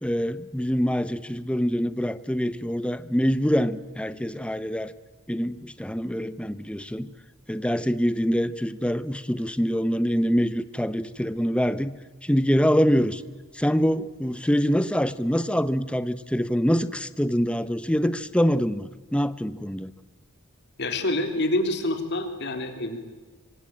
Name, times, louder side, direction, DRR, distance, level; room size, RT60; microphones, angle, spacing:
voice 1, 0.0-4.9 5.3-7.1 7.5-11.9 12.2-13.2 13.5-19.9, equal, 5° left, 13 dB, 0.9 m, -25 dB
voice 2, 20.8-23.0, left 1 dB, 55° left, 6 dB, 3.6 m, -27 dB
25.5 x 25.0 x 8.8 m, 1.4 s
head